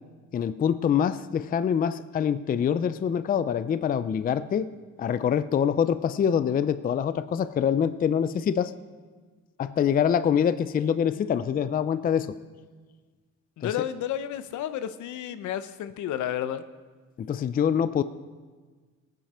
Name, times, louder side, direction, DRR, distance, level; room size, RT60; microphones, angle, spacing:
voice 1, 0.3-4.7 5.0-8.7 9.6-12.3 13.6-13.7 17.2-18.0, left 8 dB, 30° left, 14 dB, 0.4 m, -25 dB
voice 2, 13.6-16.6, left 10 dB, 75° left, 12 dB, 0.8 m, -31 dB
19.0 x 9.2 x 4.3 m, 1.4 s
cardioid pair, 115°, 30 cm